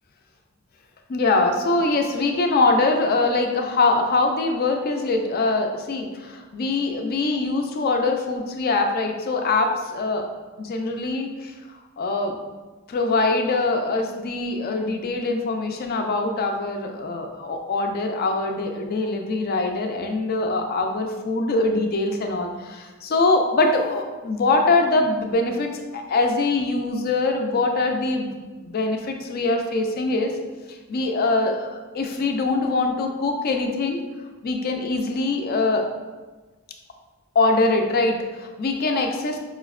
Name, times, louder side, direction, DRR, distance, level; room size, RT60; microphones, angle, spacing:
voice 1, 1.1-10.3 10.6-11.5 12.0-12.4 12.9-30.3 30.9-31.7 31.9-34.0 34.4-35.9 37.4-39.4, left 3 dB, 50° left, 4 dB, 0.4 m, -23 dB
4.9 x 2.0 x 2.4 m, 1.3 s
head